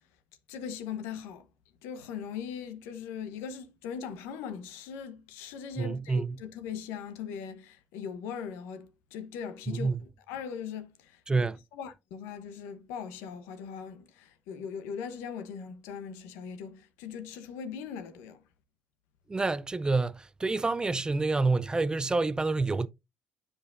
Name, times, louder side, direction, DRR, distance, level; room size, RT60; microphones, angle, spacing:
voice 1, 0.5-1.5 1.8-11.5 11.7-18.4, left 7 dB, 90° left, 0.8 m, -40 dB
voice 2, 5.8-6.4 9.7-10.0 11.3-11.6 19.3-22.9, right 3 dB, 20° right, 0.4 m, -28 dB
9.5 x 5.0 x 2.5 m
supercardioid pair, 80°, 4 cm